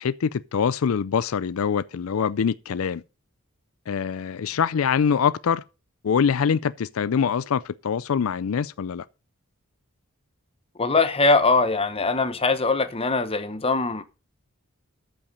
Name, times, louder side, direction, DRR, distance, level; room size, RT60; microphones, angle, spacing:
voice 1, 0.0-3.0 3.9-5.6 6.0-9.1, left 7 dB, 80° left, 0.4 m, -24 dB
voice 2, 10.8-14.0, left 3 dB, 25° left, 1.0 m, -22 dB
13.5 x 5.8 x 5.4 m
head